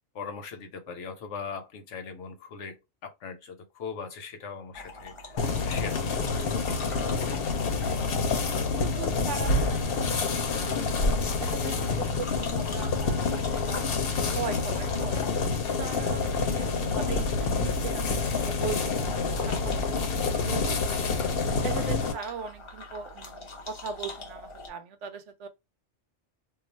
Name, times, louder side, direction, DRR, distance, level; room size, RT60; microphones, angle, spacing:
voice 1, 0.1-6.5, left 5 dB, 85° left, 1.1 m, -40 dB
sound 1, 4.7-24.7, left 2 dB, 35° left, 0.5 m, -44 dB
sound 2, 5.4-22.1, left 4 dB, 60° left, 0.8 m, -27 dB
voice 2, 8.8-11.0 11.4-13.9 14.3-15.2 15.6-19.1 19.5-21.3 21.6-25.5, right 6 dB, 85° right, 0.9 m, -39 dB
2.4 x 2.3 x 3.9 m
omnidirectional pair, 1.2 m